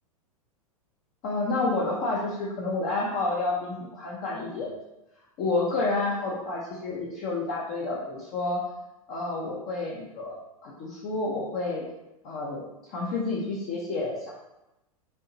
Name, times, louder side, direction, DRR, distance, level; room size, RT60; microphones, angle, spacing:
voice 1, 1.2-4.7 5.4-8.6 9.1-10.4 10.6-11.8 12.2-14.3, left 3 dB, 40° left, -5 dB, 0.9 m, -29 dB
5.4 x 2.8 x 2.7 m, 0.94 s
hypercardioid pair, 105°, 19 cm